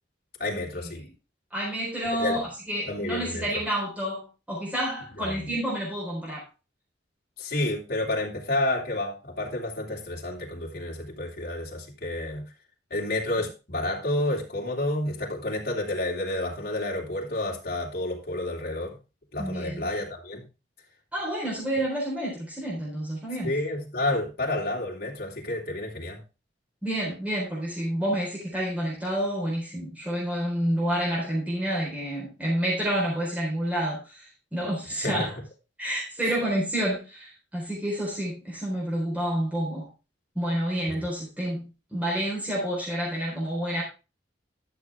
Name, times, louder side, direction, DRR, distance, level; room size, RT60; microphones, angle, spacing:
voice 1, 0.4-1.1 2.1-2.4 2.8-3.5 5.2-5.5 7.4-12.5 12.9-19.0 19.3-20.5 23.4-26.2 35.0-35.3 36.2-36.3 40.9-41.0, left 1 dB, 55° left, -1 dB, 3.0 m, -30 dB
voice 2, 1.5-6.4 19.4-19.9 21.1-23.6 26.8-34.2 34.5-35.3 35.8-39.9 40.4-43.8, right 1 dB, 10° right, -5 dB, 4.0 m, -29 dB
12.0 x 7.0 x 3.6 m, 0.30 s
head